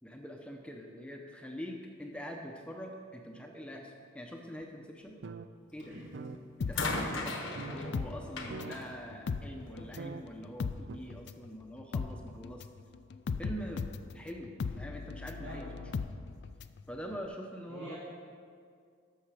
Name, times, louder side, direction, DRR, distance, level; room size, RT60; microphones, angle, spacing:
voice 1, 0.0-5.2 5.7-6.0 6.6-12.7 13.4-13.8 14.1-15.6 16.9-18.0, equal, 5° left, 2 dB, 0.7 m, -44 dB
sound 1, 4.6-4.7 5.1-5.5 5.8-5.9 6.1-6.4 7.0-7.1 7.5-7.8 8.2-8.3 8.5-8.8 9.3-9.4 10.0-10.2 10.9-11.0, right 4 dB, 60° right, 0.4 m, -42 dB
sound 2, 5.8-6.1 6.7-10.0 11.0-11.1, left 3 dB, 80° left, 1.1 m, -38 dB
sound 3, 6.6-8.8 9.1-16.8 17.1-17.2, left 5 dB, 55° left, 0.4 m, -38 dB
voice 2, 15.4-15.9 17.7-18.0, right 1 dB, 80° right, -6 dB, 1.6 m, -45 dB
13.0 x 6.3 x 4.9 m, 2.2 s
head